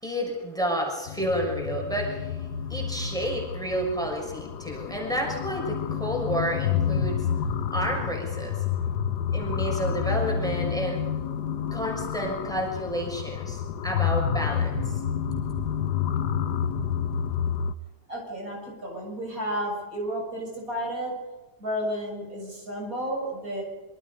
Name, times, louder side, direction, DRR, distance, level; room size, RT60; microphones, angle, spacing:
voice 1, 0.0-7.3 7.7-8.6 9.3-11.0 11.7-14.8 15.3-15.6, equal, ahead, -1 dB, 6.3 m, -30 dB
sound 1, 1.1-17.7, left 8 dB, 80° left, 1.5 m, -29 dB
voice 2, 18.1-21.1 21.6-23.6, equal, 60° right, -1 dB, 7.8 m, -32 dB
27.0 x 24.5 x 5.4 m, 1.2 s
omnidirectional pair, 1.7 m